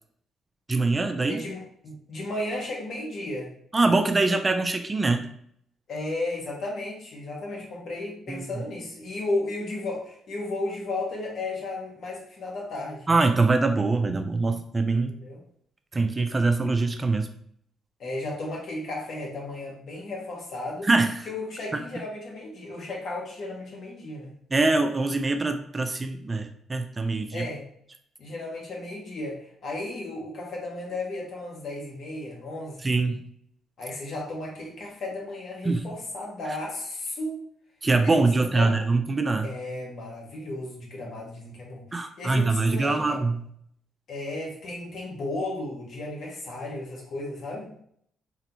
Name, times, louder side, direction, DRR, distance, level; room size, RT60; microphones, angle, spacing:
voice 1, 0.7-1.4 3.7-5.2 8.3-8.5 13.1-15.2 15.9-17.3 20.8-21.2 24.5-27.5 32.8-33.2 35.6-35.9 36.5-36.6 37.8-39.5 41.9-43.4, right 3 dB, 25° right, 7 dB, 0.4 m, -23 dB
voice 2, 1.3-3.5 5.9-13.1 15.0-15.4 18.0-20.9 21.2-24.3 27.3-27.6 28.2-32.8 33.8-37.4 38.0-38.9 39.4-41.9 42.2-43.2 44.1-47.8, left 2 dB, 60° left, -3 dB, 1.5 m, -34 dB
4.0 x 3.1 x 2.9 m, 0.66 s
cardioid pair, 90°, 0 cm